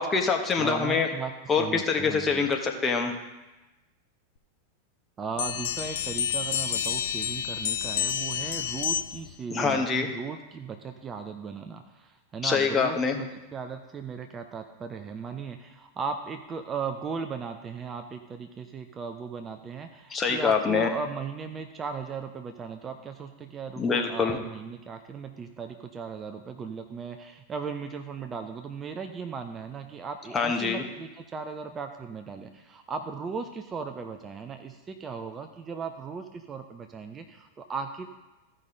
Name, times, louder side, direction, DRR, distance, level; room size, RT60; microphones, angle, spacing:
voice 1, 0.0-1.1 1.5-3.2 9.5-10.1 12.4-13.2 20.1-20.9 23.8-24.4 30.3-30.8, left 5 dB, 20° left, 3 dB, 1.2 m, -25 dB
voice 2, 0.6-2.5 5.2-38.1, right 5 dB, 20° right, 6 dB, 0.7 m, -37 dB
sound 1, 5.4-9.3, left 9 dB, 55° left, 0.7 m, -29 dB
15.0 x 5.5 x 3.9 m, 1.1 s
figure-of-eight pair, 90°, 0 cm